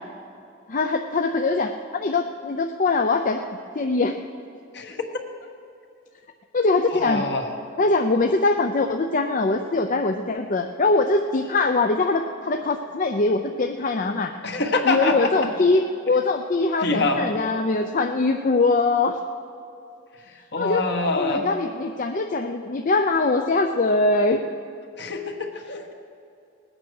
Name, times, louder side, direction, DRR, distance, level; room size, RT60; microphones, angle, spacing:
voice 1, 0.7-3.4 3.7-4.2 6.5-7.2 7.8-14.3 14.8-19.2 20.6-20.9 21.1-24.4, left 3 dB, 40° left, 5 dB, 0.5 m, -22 dB
voice 2, 6.9-7.5 14.4-15.3 16.8-17.4 20.5-21.5 25.0-25.9, left 3 dB, 60° left, 3 dB, 1.5 m, -25 dB
19.0 x 8.7 x 6.4 m, 2.5 s
head